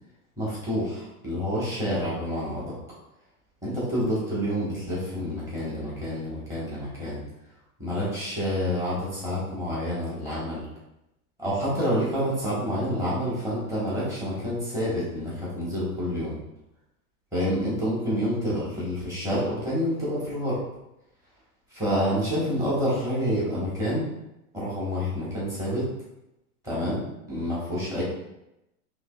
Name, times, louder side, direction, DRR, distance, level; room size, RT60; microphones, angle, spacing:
voice 1, 0.4-2.7 3.6-7.2 7.8-10.6 11.4-16.4 17.3-20.6 21.7-24.1 24.5-25.9 26.6-27.0 27.3-28.0, equal, 5° right, -9 dB, 1.6 m, -28 dB
5.6 x 3.1 x 2.5 m, 0.89 s
supercardioid pair, 135°, 44 cm